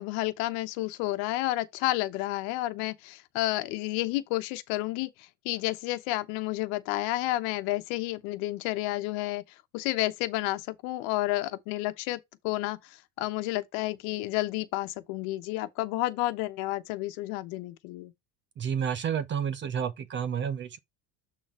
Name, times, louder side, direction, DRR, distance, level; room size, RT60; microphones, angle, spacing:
voice 1, 0.0-5.1 5.4-9.4 9.7-12.8 13.2-18.1, left 17 dB, 75° left, 1.1 m, -30 dB
voice 2, 18.6-20.8, right 8 dB, 25° right, 0.5 m, -30 dB
8.4 x 3.8 x 4.3 m
cardioid pair, 165°, 48 cm